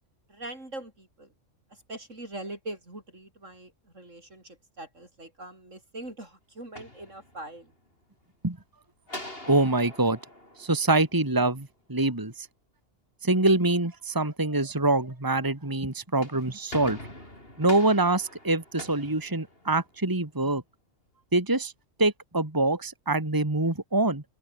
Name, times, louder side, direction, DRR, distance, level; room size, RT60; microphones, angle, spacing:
voice 1, 0.3-1.3 1.7-7.7, right 1 dB, 75° right, 7.2 m, -42 dB
sound 1, 6.6-7.8 9.1-11.5 15.9-20.0, left 1 dB, 50° left, 7.9 m, -44 dB
voice 2, 9.5-10.2 10.6-12.5 13.2-17.0 17.6-20.6 21.3-21.7 22.0-24.2, right 2 dB, 15° right, 2.1 m, -25 dB
open air
omnidirectional pair, 1.3 m